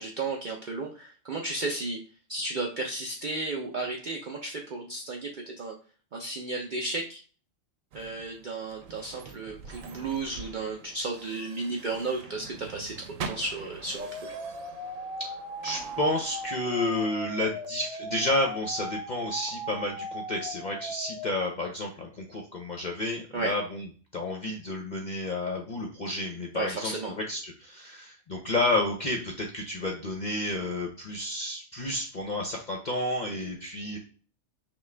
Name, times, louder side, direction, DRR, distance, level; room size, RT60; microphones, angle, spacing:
voice 1, 0.0-2.0 2.3-5.7 6.1-7.2 7.9-12.9 13.3-14.4 23.3-23.5 26.5-27.1, right 3 dB, 50° right, 0 dB, 0.6 m, -33 dB
sound 1, 7.9-17.1, right 5 dB, 85° right, 1.0 m, -44 dB
sound 2, 14.0-21.3, equal, 5° right, 0.5 m, -38 dB
voice 2, 15.6-23.9 24.1-34.0, left 2 dB, 45° left, 1 dB, 0.7 m, -31 dB
5.9 x 2.3 x 3.3 m, 0.39 s
omnidirectional pair, 1.3 m